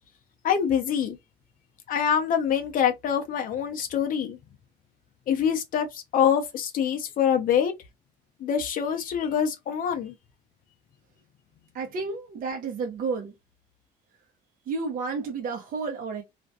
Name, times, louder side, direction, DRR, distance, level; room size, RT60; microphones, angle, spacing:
voice 1, 0.4-1.2 1.9-4.4 5.3-7.7 8.4-10.1, left 8 dB, 55° left, 0.5 m, -25 dB
voice 2, 11.7-13.3 14.6-16.2, right 4 dB, 55° right, 0.7 m, -31 dB
2.4 x 2.1 x 2.6 m
cardioid pair, 110°, 17 cm